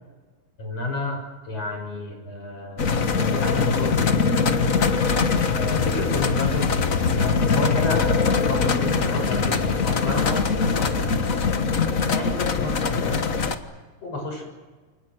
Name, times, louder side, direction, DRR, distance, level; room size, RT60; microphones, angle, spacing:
voice 1, 0.6-4.3 5.5-6.7 7.1-11.1 12.1-13.2 14.0-14.4, left 2 dB, 50° left, 2 dB, 7.7 m, -30 dB
sound 1, 2.8-13.5, left 5 dB, 85° left, 0.7 m, -22 dB
29.5 x 25.0 x 6.3 m, 1.4 s
omnidirectional pair, 3.7 m